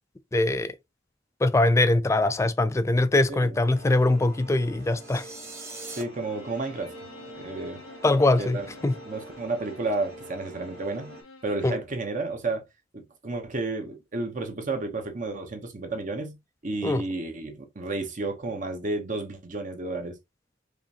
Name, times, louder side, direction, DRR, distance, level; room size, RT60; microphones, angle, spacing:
voice 1, 0.3-0.8 1.4-5.3 8.0-9.0 11.6-11.8 16.8-17.0, left 2 dB, 15° left, 0.3 m, -22 dB
sound 1, 3.6-11.2, right 1 dB, 60° right, 1.6 m, -46 dB
sound 2, 4.8-6.0, right 3 dB, 15° right, 1.0 m, -42 dB
voice 2, 5.9-6.9 7.4-7.8 8.4-8.7 9.1-11.2 11.4-12.6 12.9-16.4 16.6-20.2, right 2 dB, 40° right, 0.8 m, -32 dB
Bowed string instrument, 6.1-11.8, left 3 dB, 85° left, 0.9 m, -49 dB
5.0 x 2.6 x 2.8 m
head